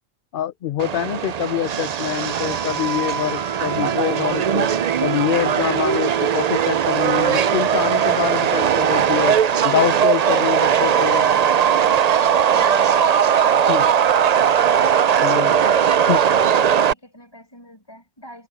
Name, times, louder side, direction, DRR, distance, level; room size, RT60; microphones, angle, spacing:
voice 1, 0.3-4.7 5.0-9.4 9.6-11.2 13.7-13.8 15.2-15.5 16.1-16.2, left 11 dB, 60° left, 0.6 m, -25 dB
Subway metro underground, 0.8-16.9, right 8 dB, 85° right, 0.3 m, -19 dB
voice 2, 11.7-14.6 15.1-18.5, equal, 20° left, 7.8 m, -44 dB
omnidirectional pair, 1.4 m